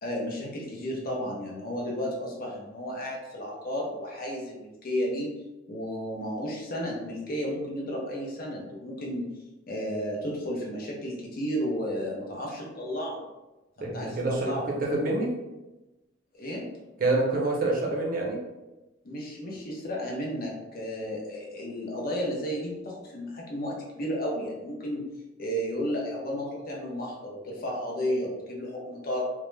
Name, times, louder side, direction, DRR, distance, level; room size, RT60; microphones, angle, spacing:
voice 1, 0.0-5.4 5.7-9.3 9.7-13.2 13.8-14.8 16.4-16.6 19.0-25.1 25.4-29.2, equal, 50° left, -2 dB, 0.6 m, -33 dB
voice 2, 13.8-15.3 17.0-18.4, right 2 dB, 45° right, -2 dB, 0.6 m, -27 dB
2.2 x 2.0 x 3.1 m, 1.0 s
head